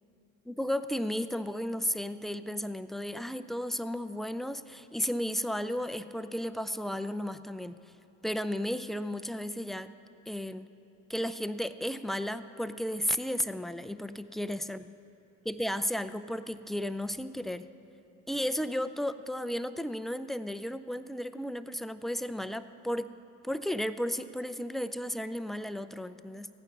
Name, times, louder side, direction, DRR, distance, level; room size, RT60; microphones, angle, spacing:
voice 1, 0.5-7.8 8.2-9.9 10.3-10.7 11.1-14.8 15.5-17.7 18.3-23.1 23.4-26.5, equal, ahead, 12 dB, 0.3 m, -34 dB
15.0 x 9.1 x 5.9 m, 2.8 s
hypercardioid pair, 65°, 38 cm